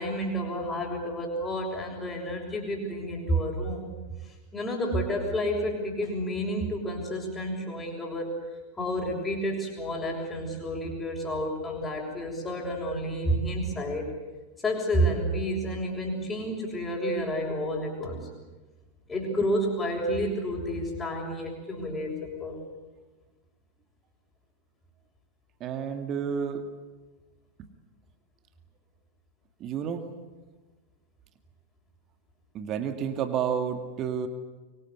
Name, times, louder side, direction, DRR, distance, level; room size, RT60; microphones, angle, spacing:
voice 1, 0.0-3.9 4.5-8.3 8.8-14.1 14.6-18.2 19.1-22.6, equal, 15° left, -6 dB, 6.1 m, -30 dB
voice 2, 25.6-26.7 27.6-27.7 29.6-30.1 32.5-34.3, right 7 dB, 35° right, 7 dB, 2.1 m, -30 dB
25.5 x 24.0 x 8.3 m, 1.2 s
figure-of-eight pair, 90°, 0 cm